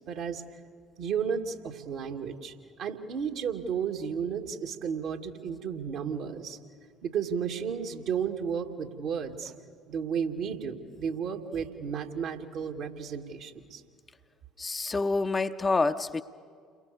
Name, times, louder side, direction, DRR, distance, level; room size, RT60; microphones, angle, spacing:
voice 1, 0.1-0.4 1.0-2.5 2.8-6.6 7.0-9.5 9.9-13.8, right 7 dB, 55° right, 2.1 m, -33 dB
voice 2, 14.6-16.2, left 3 dB, 20° left, 0.8 m, -27 dB
29.5 x 22.5 x 6.9 m
figure-of-eight pair, 55°, 0 cm